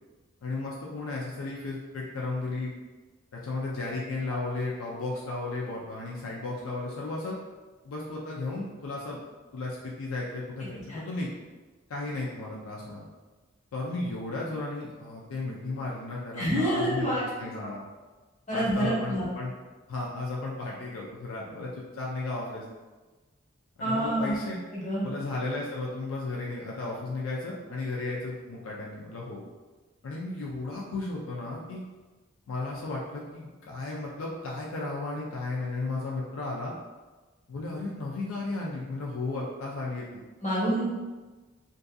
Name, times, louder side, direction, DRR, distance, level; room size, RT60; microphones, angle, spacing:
voice 1, 0.4-2.7 3.3-7.4 7.8-9.2 9.5-11.3 11.9-13.0 13.7-17.8 18.5-19.5 19.9-22.6 23.8-24.6 25.0-29.4 30.0-31.8 32.5-36.7 37.5-40.2, left 2 dB, 80° left, -3 dB, 0.4 m, -34 dB
voice 2, 16.4-17.2 17.6-17.7 18.5-19.3 23.8-24.4 24.7-25.1 40.4-41.0, right 1 dB, 35° left, -8 dB, 1.0 m, -27 dB
2.6 x 2.5 x 2.3 m, 1.2 s
head